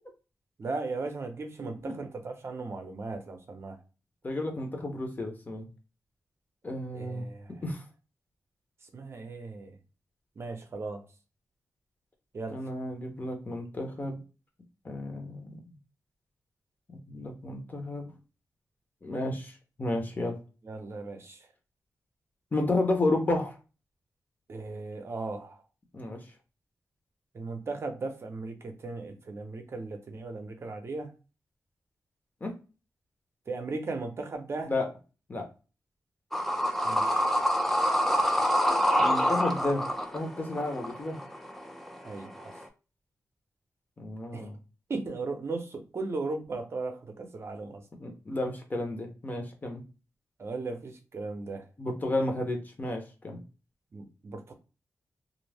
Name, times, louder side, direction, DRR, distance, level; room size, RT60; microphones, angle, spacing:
voice 1, 0.6-3.8 6.9-7.7 8.9-9.8 10.4-11.0 12.3-12.6 20.6-21.5 24.5-25.6 27.3-31.1 33.5-34.7 36.8-37.3 42.0-42.5 44.3-44.5 44.9-47.8 50.4-51.7 53.9-54.5, right 3 dB, 50° right, 0.6 m, -37 dB
voice 2, 4.2-5.7 6.6-7.2 7.6-7.8 12.5-14.2 14.8-15.6 17.1-18.1 19.0-19.5 19.8-20.4 22.5-23.5 25.9-26.2 32.4-32.5 34.7-34.9 35.3-35.5 39.0-41.2 44.0-44.5 48.0-49.8 51.8-53.4, left 2 dB, 30° left, 0.8 m, -32 dB
sound 1, 36.3-42.6, equal, 5° left, 0.4 m, -27 dB
2.5 x 2.0 x 3.3 m
wide cardioid pair, 105°, 6 cm